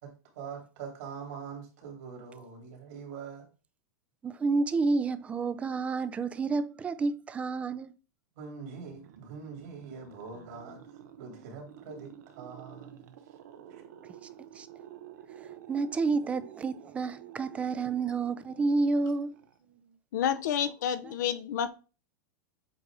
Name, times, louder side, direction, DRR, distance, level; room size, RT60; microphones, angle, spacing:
voice 1, 0.0-3.5 8.4-10.8 11.2-13.1 13.7-13.8, right 5 dB, 60° right, 2.7 m, -43 dB
voice 2, 4.2-7.9 14.5-14.7 15.7-19.3, right 3 dB, 15° right, 0.4 m, -29 dB
sound 1, 8.8-20.0, right 10 dB, 75° right, 0.9 m, -51 dB
voice 3, 20.1-21.8, left 9 dB, 80° left, 0.7 m, -30 dB
8.0 x 2.7 x 4.7 m
supercardioid pair, 155°, 10 cm